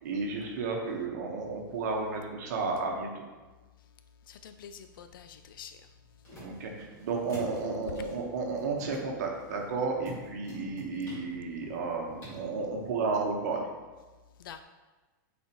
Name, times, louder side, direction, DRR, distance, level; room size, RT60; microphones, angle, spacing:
voice 1, 0.0-3.1 6.4-13.7, right 4 dB, 55° right, 1 dB, 1.1 m, -32 dB
voice 2, 4.3-5.9 14.4-14.6, left 8 dB, 90° left, 9 dB, 0.4 m, -47 dB
sound 1, 5.2-12.9, equal, 20° left, 2.0 m, -50 dB
8.0 x 4.3 x 3.0 m, 1.2 s
supercardioid pair, 175°, 11 cm